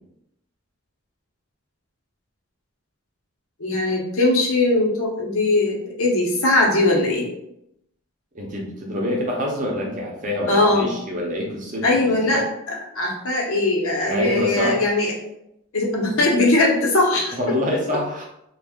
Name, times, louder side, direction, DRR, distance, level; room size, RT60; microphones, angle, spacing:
voice 1, 3.6-7.3 10.5-10.9 11.8-12.4 12.7-15.1 15.7-17.4, left 2 dB, 80° left, -1 dB, 0.8 m, -20 dB
voice 2, 8.3-12.4 14.1-14.8 17.3-18.3, equal, 35° right, -1 dB, 0.7 m, -26 dB
2.6 x 2.3 x 3.6 m, 0.80 s
head